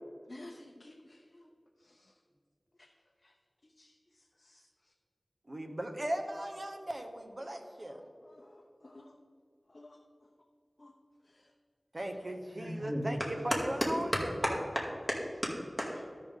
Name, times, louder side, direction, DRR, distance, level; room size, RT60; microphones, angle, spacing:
voice 1, 0.3-1.5 1.8-2.1 2.8-2.9 3.2-3.3 3.8-3.9 4.4-4.6 8.2-9.1 9.7-10.0 10.8-10.9 11.3-11.5 12.8-12.9, left 1 dB, 50° left, 2 dB, 0.6 m, -53 dB
voice 2, 5.5-8.0 11.9-14.6, right 1 dB, 50° right, 4 dB, 1.0 m, -38 dB
voice 3, 12.6-13.0 14.1-14.2 14.7-16.0, equal, 15° right, -3 dB, 2.2 m, -35 dB
13.0 x 5.5 x 3.6 m, 2.2 s
wide cardioid pair, 50°, 0 cm